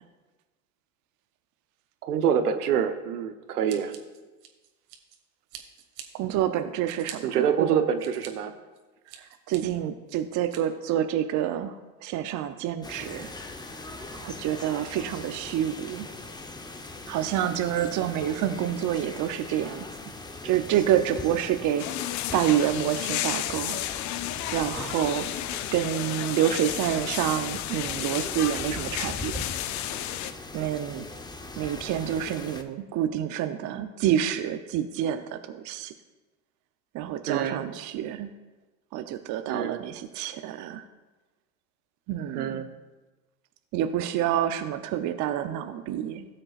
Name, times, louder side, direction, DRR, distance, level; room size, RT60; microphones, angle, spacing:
voice 1, 2.0-3.9 7.2-8.5 37.3-37.7 39.5-39.8 42.3-42.7, right 8 dB, 85° right, 8 dB, 1.1 m, -26 dB
Scissors, 3.7-5.2 5.5-6.1 6.5-7.2 7.7-8.3 8.7-9.6 10.1-10.6, right 10 dB, 60° right, 1.8 m, -44 dB
voice 2, 6.1-7.7 9.5-11.7 12.0-13.3 14.1-16.1 17.1-19.9 20.4-23.8 24.5-29.6 30.5-31.1 31.6-35.9 36.9-38.3 38.9-40.8 42.1-42.6 43.7-46.3, right 11 dB, 40° right, 8 dB, 0.7 m, -28 dB
sound 1, 12.8-32.6, left 2 dB, 10° left, 0.8 m, -40 dB
sound 2, 21.8-30.3, left 14 dB, 40° left, 0.5 m, -32 dB
17.0 x 7.6 x 2.5 m, 1.2 s
hypercardioid pair, 90°, 45 cm